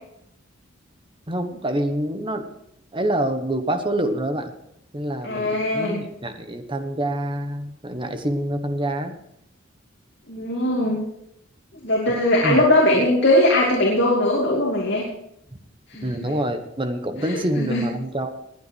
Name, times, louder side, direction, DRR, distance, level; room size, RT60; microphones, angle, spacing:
voice 1, 1.3-2.5 2.9-4.5 4.9-9.2 12.1-12.6 15.5-15.6 16.0-18.3, right 1 dB, 25° right, 7 dB, 1.3 m, -26 dB
voice 2, 5.2-6.0 10.3-11.0 11.8-15.0 15.9-16.3 17.2-17.8, left 1 dB, 60° left, -3 dB, 2.7 m, -20 dB
20.0 x 9.0 x 4.6 m, 0.77 s
head